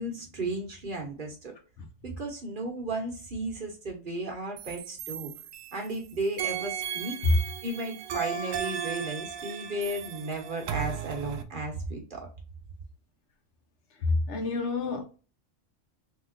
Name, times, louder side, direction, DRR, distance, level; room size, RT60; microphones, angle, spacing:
voice 1, 0.0-1.5 2.0-5.3 5.7-7.2 7.6-12.3, right 2 dB, 45° right, 1.0 m, -34 dB
sound 1, 4.6-6.0 6.4-11.4, right 8 dB, 85° right, 1.0 m, -35 dB
voice 2, 14.0-15.0, left 3 dB, 65° left, 1.0 m, -26 dB
3.7 x 2.9 x 2.5 m
omnidirectional pair, 1.3 m